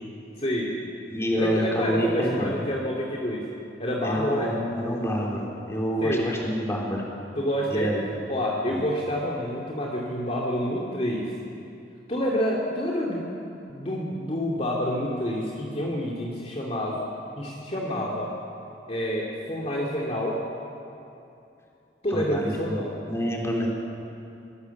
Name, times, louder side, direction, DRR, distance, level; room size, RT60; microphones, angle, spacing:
voice 1, 0.4-0.7 1.4-3.4 3.8-4.5 6.0-6.3 7.4-7.9 8.3-11.3 12.1-13.2 13.7-17.0 17.4-18.3 18.9-20.4 22.0-22.9, equal, 35° left, -3 dB, 2.5 m, -28 dB
voice 2, 1.1-2.6 4.0-7.0 7.7-8.1 8.7-8.8 22.1-22.8 23.1-23.7, equal, 15° left, -2 dB, 3.6 m, -27 dB
24.0 x 18.5 x 7.2 m, 2.7 s
head